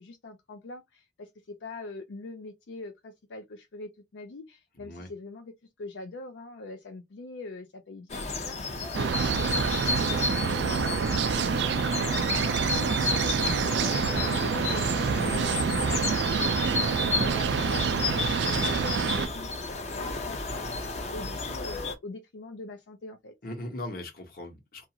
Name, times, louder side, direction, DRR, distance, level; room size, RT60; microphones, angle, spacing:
voice 1, 0.0-5.5 5.8-9.7 10.0-11.6 12.1-13.3 13.7-14.0 14.4-20.7 21.1-23.3, left 2 dB, 85° left, 0.5 m, -43 dB
voice 2, 4.8-5.1 14.1-14.4 23.4-24.9, left 1 dB, 55° left, 0.9 m, -39 dB
sound 1, 8.1-21.9, left 3 dB, 40° left, 0.6 m, -32 dB
sound 2, 8.9-19.3, right 6 dB, 75° right, 0.4 m, -27 dB
2.4 x 2.4 x 2.8 m
head